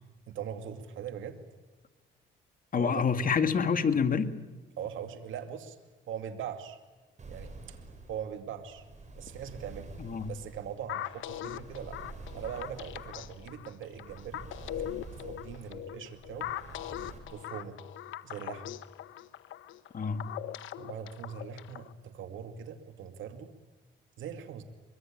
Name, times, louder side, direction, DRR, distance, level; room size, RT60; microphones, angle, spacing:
voice 1, 0.3-1.4 2.7-3.1 4.8-5.8 6.1-6.8 7.3-7.8 8.1-8.8 9.2-9.9 10.3-12.0 12.3-14.5 14.8-16.5 17.3-17.8 18.2-18.7 20.8-23.5 24.2-24.6, right 8 dB, 80° right, 2.4 m, -41 dB
voice 2, 2.7-4.3 10.0-10.3 19.9-20.3, left 6 dB, 45° left, 2.1 m, -27 dB
sound 1, 7.2-17.2, right 3 dB, 35° right, 5.5 m, -48 dB
sound 2, 10.9-21.9, left 12 dB, 85° left, 1.0 m, -41 dB
24.5 x 22.5 x 8.8 m
cardioid pair, 90°, 20 cm